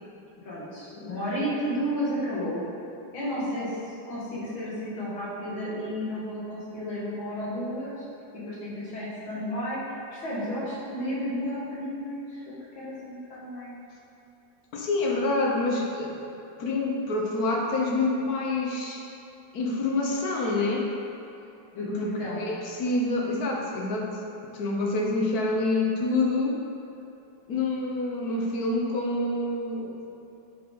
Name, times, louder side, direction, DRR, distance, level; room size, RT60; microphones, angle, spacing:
voice 1, 0.5-2.6 3.1-3.8 4.1-8.1 8.3-13.8 21.7-22.4, equal, 90° left, -8 dB, 2.4 m, -32 dB
voice 2, 14.7-16.2 16.6-19.0 19.5-20.9 21.8-22.1 22.4-24.2 24.5-26.6 27.5-30.0, left 2 dB, 60° left, -1 dB, 1.2 m, -27 dB
8.5 x 4.1 x 3.8 m, 2.7 s
omnidirectional pair, 2.1 m